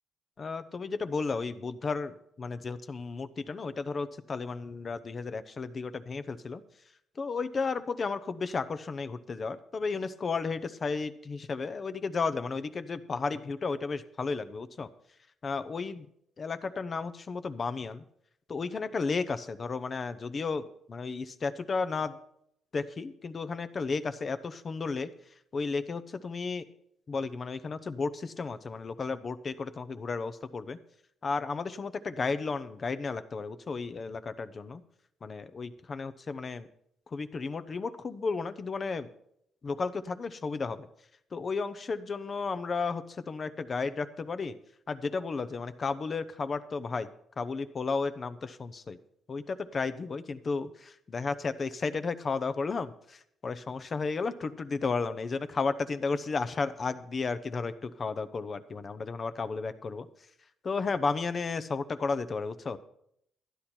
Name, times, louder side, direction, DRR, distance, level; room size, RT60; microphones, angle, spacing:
voice 1, 0.4-6.6 7.2-14.9 15.4-16.1 16.4-18.0 18.5-22.2 22.7-25.1 25.5-26.6 27.1-30.8 31.2-34.8 35.2-36.7 37.1-39.1 39.6-40.9 41.3-44.5 44.9-47.1 47.4-49.0 49.3-60.1 60.6-62.8, left 4 dB, 40° left, 13 dB, 0.7 m, -33 dB
12.5 x 9.9 x 4.4 m, 0.72 s
cardioid pair, 90°, 0 cm